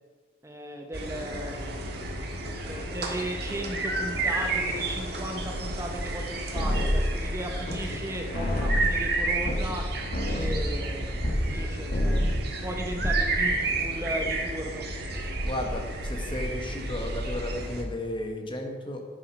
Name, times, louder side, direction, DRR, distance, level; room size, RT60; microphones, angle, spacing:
voice 1, 0.4-2.4 2.7-9.9 10.2-12.3 12.6-14.9, equal, 15° right, 3 dB, 0.8 m, -36 dB
sound 1, 0.9-17.8, right 2 dB, 60° right, 1.5 m, -31 dB
sound 2, 6.5-8.1 8.3-11.6 11.9-12.5 12.8-13.4, equal, 50° left, 1.4 m, -28 dB
sound 3, 9.6-14.4, equal, 10° left, 3.1 m, -43 dB
voice 2, 15.4-19.1, left 1 dB, 30° left, 3 dB, 1.2 m, -34 dB
8.7 x 7.6 x 5.2 m, 1.5 s
head